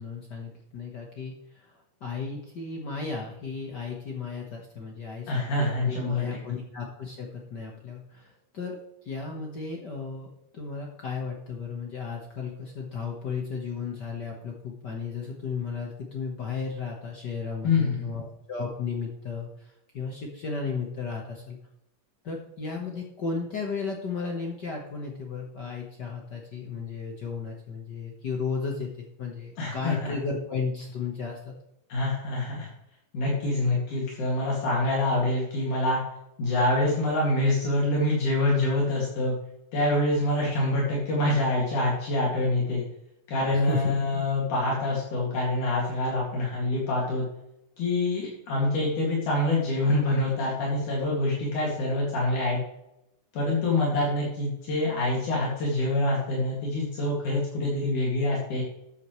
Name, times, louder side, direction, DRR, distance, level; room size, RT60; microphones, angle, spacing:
voice 1, 0.0-21.6 22.2-31.5 43.5-43.9, left 5 dB, 55° left, 0 dB, 1.2 m, -34 dB
voice 2, 5.3-6.4 17.6-18.1 29.6-30.1 31.9-32.7 33.1-36.0 36.4-39.3 39.7-42.8 43.3-47.3 47.8-52.6 53.3-58.6, left 2 dB, 70° left, -5 dB, 3.8 m, -26 dB
13.0 x 8.5 x 3.2 m, 0.85 s
omnidirectional pair, 3.7 m